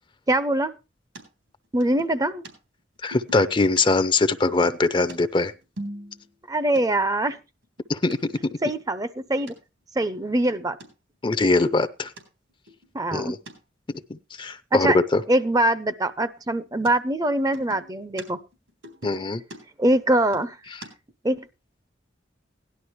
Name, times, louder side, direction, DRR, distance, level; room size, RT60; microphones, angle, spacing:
voice 1, 0.3-0.7 1.7-2.4 6.5-7.4 8.6-9.5 10.0-10.8 12.9-13.4 14.7-15.0 15.3-18.4 19.8-20.6 21.2-21.5, right 1 dB, 20° right, 14 dB, 0.6 m, -23 dB
sound 1, 1.2-1.3 1.8-2.5 3.1-3.8 4.5-6.4 6.8-6.9 7.3-7.4 7.6-8.2 8.6-8.9 9.5-9.6 10.0-10.1 10.3-10.9 11.3-11.7 12.2-12.3 12.7-13.5 16.9-17.0 17.2-18.3 18.5-20.9, right 1 dB, 80° right, 3.5 m, -42 dB
voice 2, 3.0-5.5 7.9-8.2 11.2-12.1 13.1-13.4 14.1-15.2 19.0-19.4, left 3 dB, 25° left, 13 dB, 0.5 m, -22 dB
17.0 x 11.5 x 3.1 m, 0.29 s
head